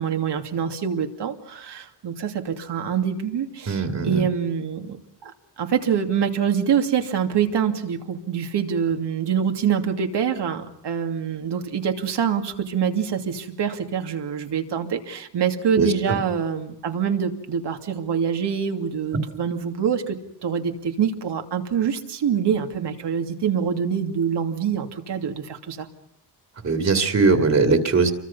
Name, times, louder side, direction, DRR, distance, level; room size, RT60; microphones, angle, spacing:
voice 1, 0.0-5.0 5.2-5.3 5.6-20.2 20.4-25.9, right 7 dB, 80° right, 4 dB, 2.8 m, -25 dB
voice 2, 3.7-4.3 15.8-16.2 26.6-28.1, right 4 dB, 40° right, 6 dB, 2.5 m, -20 dB
29.0 x 24.0 x 5.7 m, 0.70 s
wide cardioid pair, 170°, 41 cm